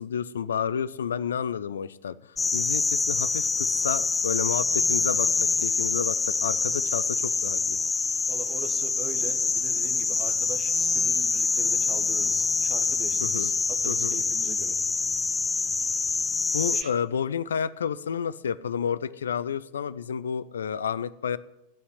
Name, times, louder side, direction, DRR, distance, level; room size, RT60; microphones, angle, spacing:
voice 1, 0.0-7.8 13.2-13.5 13.9-14.2 16.5-21.4, left 7 dB, 65° left, 18 dB, 0.5 m, -30 dB
sound 1, 2.4-16.8, left 4 dB, 15° left, 0.5 m, -25 dB
voice 2, 8.3-13.5 13.8-14.8 16.7-16.9, right 7 dB, 40° right, 9 dB, 1.5 m, -41 dB
16.5 x 5.7 x 9.4 m, 0.93 s
figure-of-eight pair, 90°, 0 cm